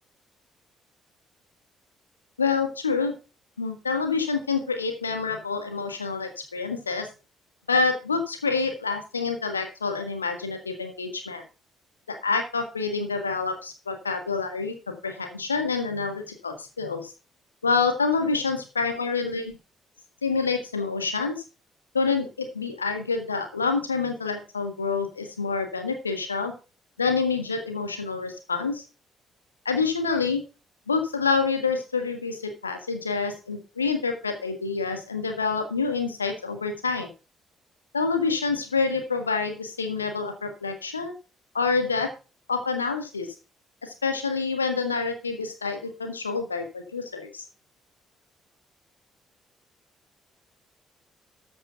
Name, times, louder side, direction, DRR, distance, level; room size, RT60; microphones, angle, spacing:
voice 1, 2.4-3.1 3.6-7.1 7.7-11.4 12.1-17.1 17.6-19.6 20.2-21.4 21.9-26.5 27.0-28.8 29.6-30.4 30.9-37.1 37.9-41.1 41.5-42.1 42.5-43.3 43.8-47.4, left 4 dB, 85° left, 6 dB, 1.6 m, -27 dB
13.5 x 5.4 x 5.7 m, 0.31 s
figure-of-eight pair, 45°, 0 cm